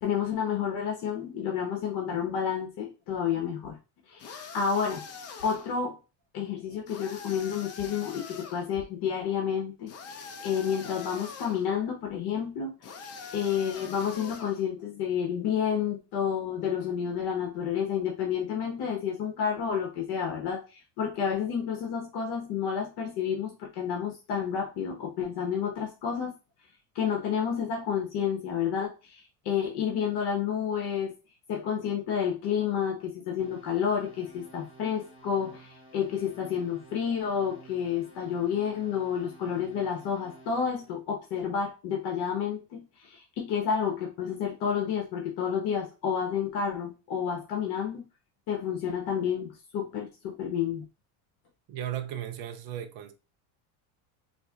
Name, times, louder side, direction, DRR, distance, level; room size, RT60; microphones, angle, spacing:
voice 1, 0.0-3.8 4.1-5.0 5.4-6.0 6.3-26.3 26.9-31.1 31.5-48.0 48.5-50.8, left 7 dB, 60° left, 1.1 m, -30 dB
sound 1, 4.2-5.8 6.9-8.7 9.9-11.7 12.8-14.6, left 5 dB, 35° left, 0.6 m, -43 dB
sound 2, 33.4-40.9, right 2 dB, 10° right, 1.9 m, -53 dB
voice 2, 51.7-53.1, right 11 dB, 55° right, 0.7 m, -35 dB
4.2 x 2.6 x 2.3 m
cardioid pair, 130°, 45 cm